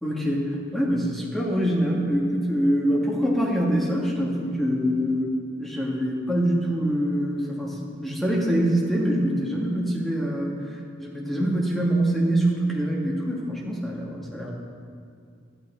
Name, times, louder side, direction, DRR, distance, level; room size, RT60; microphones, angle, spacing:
voice 1, 0.0-0.4 0.7-14.5, equal, ahead, -4 dB, 1.6 m, -25 dB
12.0 x 9.1 x 4.3 m, 2.3 s
head